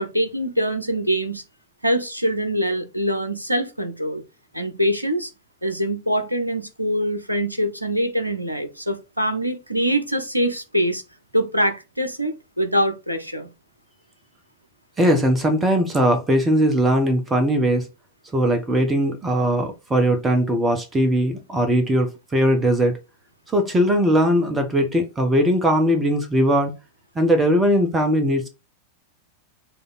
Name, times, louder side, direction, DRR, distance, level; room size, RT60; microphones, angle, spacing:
voice 1, 0.0-1.4 1.8-4.2 4.5-5.3 5.6-11.0 11.3-13.5, equal, 85° right, 0.8 m, -24 dB
voice 2, 15.0-17.9 18.3-23.0 23.5-26.7 27.1-28.5, equal, 15° right, 1.3 m, -19 dB
6.8 x 3.4 x 4.2 m
figure-of-eight pair, 90°, 0 cm